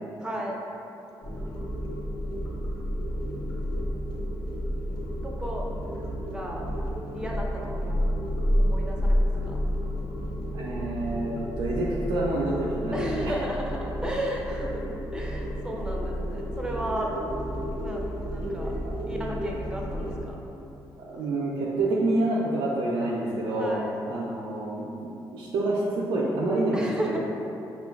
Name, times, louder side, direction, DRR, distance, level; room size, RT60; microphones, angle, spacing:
voice 1, 0.2-0.6 5.2-5.7 6.3-6.6 7.1-8.1 8.6-9.6 12.9-17.1 17.8-18.7 19.1-20.4 23.6-24.0 26.7-27.2, equal, 10° right, -2 dB, 0.6 m, -34 dB
sound 1, 1.2-20.2, equal, 60° left, 1.0 m, -30 dB
voice 2, 10.5-13.3 18.8-18.9 21.0-23.7 24.1-27.1, right 2 dB, 80° right, -5 dB, 0.4 m, -28 dB
5.1 x 2.2 x 2.3 m, 2.8 s
supercardioid pair, 65°, 9 cm